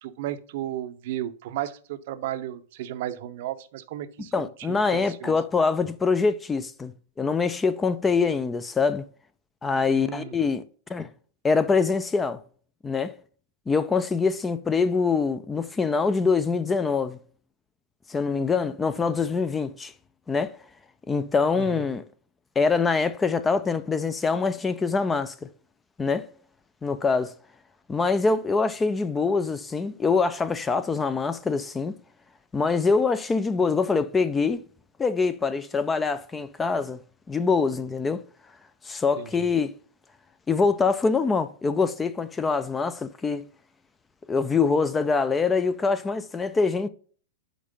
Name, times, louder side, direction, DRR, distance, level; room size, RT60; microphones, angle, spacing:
voice 1, 0.0-5.4 9.9-10.4 21.6-21.8 39.2-39.3, right 12 dB, 55° right, 0.6 m, -34 dB
voice 2, 4.3-9.0 9.6-10.6 10.9-11.1 11.4-12.4 12.8-13.1 13.7-17.2 18.1-19.9 20.3-20.5 21.1-22.0 22.6-25.4 26.0-26.3 26.8-27.3 27.9-31.9 32.5-34.6 35.0-37.0 37.3-38.2 38.8-39.7 40.5-43.4 44.3-46.9, left 4 dB, 10° left, 0.3 m, -24 dB
5.2 x 4.4 x 5.1 m
supercardioid pair, 150°, 0 cm